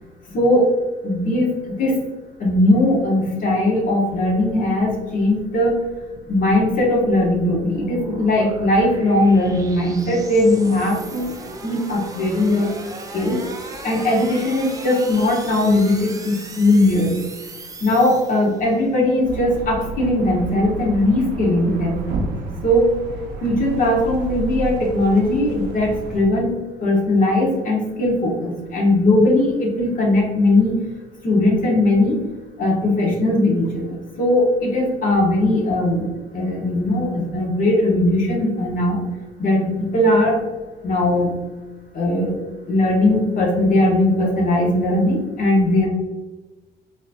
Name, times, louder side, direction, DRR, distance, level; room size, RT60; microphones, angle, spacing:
voice 1, 0.3-0.7 1.0-1.9 2.4-5.8 6.3-11.3 11.6-12.7 13.1-13.4 13.8-17.1 17.8-22.2 22.6-22.9 23.4-30.7 31.2-32.2 32.6-39.0 39.4-40.4 40.8-41.3 41.9-42.4 42.7-45.9, left 1 dB, 50° left, -1 dB, 1.3 m, -19 dB
sound 1, 5.0-18.9, right 2 dB, 20° right, 0.5 m, -38 dB
sound 2, 19.2-26.2, right 2 dB, 90° right, 0.7 m, -31 dB
4.0 x 2.9 x 2.6 m, 1.2 s
cardioid pair, 110°, 17 cm